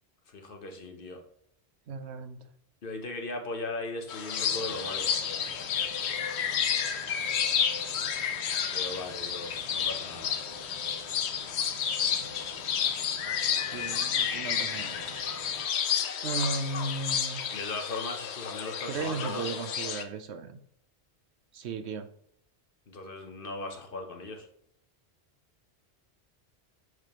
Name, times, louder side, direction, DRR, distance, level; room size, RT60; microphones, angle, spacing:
voice 1, 0.3-1.2 2.8-5.1 8.7-10.4 17.5-19.5 22.9-24.5, left 2 dB, 55° left, 4 dB, 1.1 m, -38 dB
voice 2, 1.9-2.4 12.1-12.3 13.7-15.1 16.2-17.5 18.9-20.6 21.5-22.1, right 4 dB, 80° right, 7 dB, 1.0 m, -35 dB
sound 1, 4.1-20.0, left 8 dB, 80° left, 0.9 m, -31 dB
sound 2, 4.3-15.6, right 4 dB, 35° right, 1.0 m, -51 dB
6.8 x 4.7 x 3.0 m, 0.68 s
omnidirectional pair, 1.1 m